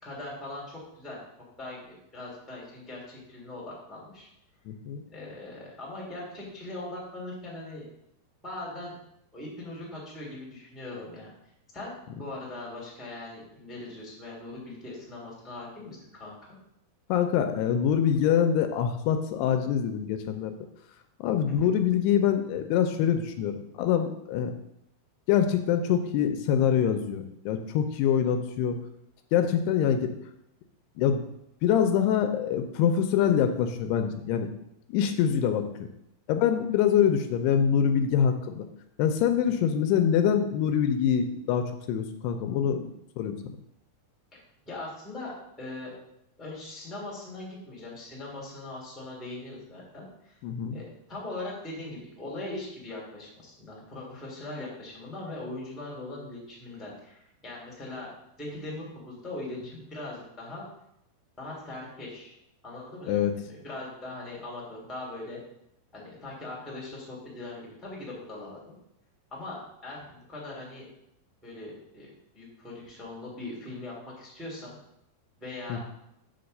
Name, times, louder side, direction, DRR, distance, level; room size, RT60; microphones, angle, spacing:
voice 1, 0.0-0.6 0.9-1.2 1.6-4.3 5.1-7.8 8.4-8.9 9.3-11.3 11.7-16.5 21.5-21.7 39.4-39.7 44.6-45.9 46.4-50.4 50.7-58.1 58.4-60.7 61.4-62.3 62.6-65.4 65.9-68.7 69.3-70.8 71.4-74.7 75.4-75.8, left 2 dB, ahead, -4 dB, 1.7 m, -40 dB
voice 2, 4.7-5.0 17.1-20.5 21.2-24.5 25.3-28.8 29.3-30.2 31.0-31.2 31.6-34.5 34.9-35.7 36.3-38.7 39.0-42.9 43.2-43.4 50.4-50.8 63.1-63.3 75.7-75.8, left 8 dB, 80° left, 7 dB, 2.6 m, -25 dB
6.9 x 4.5 x 6.5 m, 0.79 s
omnidirectional pair, 4.8 m